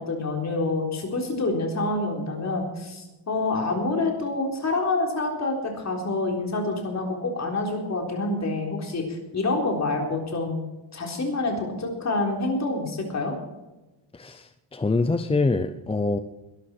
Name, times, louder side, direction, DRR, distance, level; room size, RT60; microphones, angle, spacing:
voice 1, 0.0-9.1 9.3-10.6 10.9-13.3, left 2 dB, 35° left, 1 dB, 3.9 m, -27 dB
voice 2, 14.1-16.2, left 3 dB, 15° left, 9 dB, 0.5 m, -25 dB
21.0 x 13.0 x 4.5 m, 1.0 s
wide cardioid pair, 180°, 46 cm